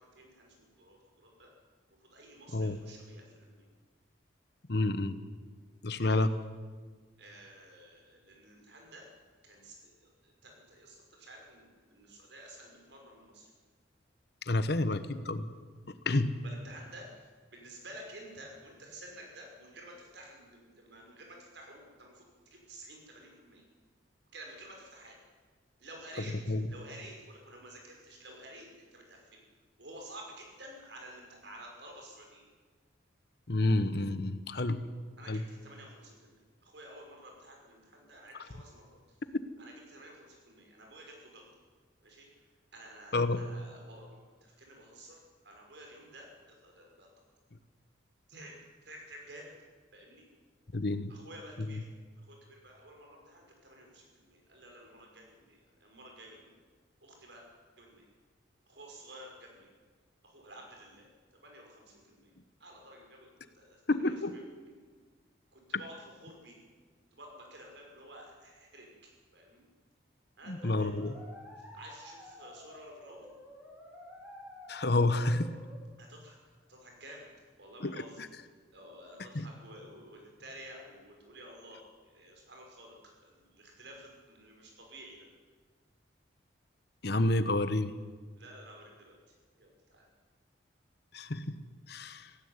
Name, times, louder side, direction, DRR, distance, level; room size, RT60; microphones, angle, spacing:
voice 1, 0.0-1.5 2.0-3.7 6.1-6.2 7.2-9.1 9.4-13.5 16.4-23.6 24.3-25.1 25.8-26.4 26.7-29.4 29.8-32.5 35.2-39.2 39.6-41.5 42.0-42.3 42.7-45.2 45.4-47.1 48.3-48.6 48.8-49.5 49.9-50.2 51.1-51.9 52.3-56.5 57.0-57.4 57.8-58.1 58.7-59.7 60.2-61.1 61.3-62.3 62.6-63.3 63.5-64.7 65.5-66.6 67.1-68.9 69.3-69.7 70.4-70.9 71.6-73.3 76.0-76.4 76.7-77.3 77.6-78.2 78.7-82.9 83.2-85.3 88.4-90.1, right 1 dB, 65° right, 1 dB, 6.0 m, -52 dB
voice 2, 4.7-5.2 5.8-6.3 14.5-15.5 16.1-16.3 26.5-26.6 33.5-34.8 35.3-35.4 39.3-39.4 43.1-43.5 50.7-51.1 63.9-64.4 70.5-71.2 74.7-75.6 77.8-78.3 79.3-79.5 87.0-87.9 91.1-91.6 91.9-92.3, left 2 dB, 55° left, 12 dB, 1.1 m, -29 dB
sound 1, 70.6-75.8, left 1 dB, 10° right, 4.8 m, -50 dB
16.5 x 16.5 x 9.7 m, 1.5 s
head